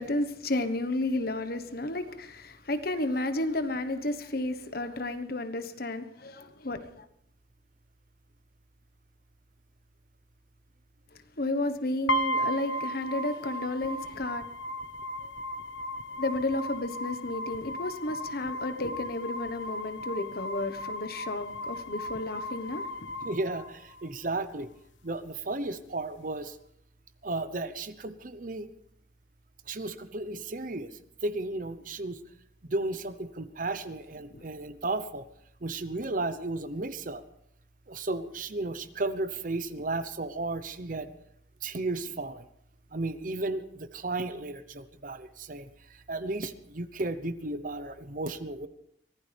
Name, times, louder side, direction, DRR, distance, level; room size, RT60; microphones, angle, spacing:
voice 1, 0.0-7.0 11.4-14.4 16.2-22.8 34.3-34.4, left 2 dB, 55° left, 1.2 m, -32 dB
sound 1, 12.1-24.1, equal, 85° left, 1.1 m, -35 dB
voice 2, 23.2-24.7 25.0-26.6 27.2-28.7 29.7-30.9 31.2-32.2 32.7-35.2 35.6-37.2 37.9-41.1 41.6-42.4 42.9-45.7 46.1-48.7, right 2 dB, 45° right, 0.9 m, -34 dB
23.5 x 16.0 x 3.5 m
head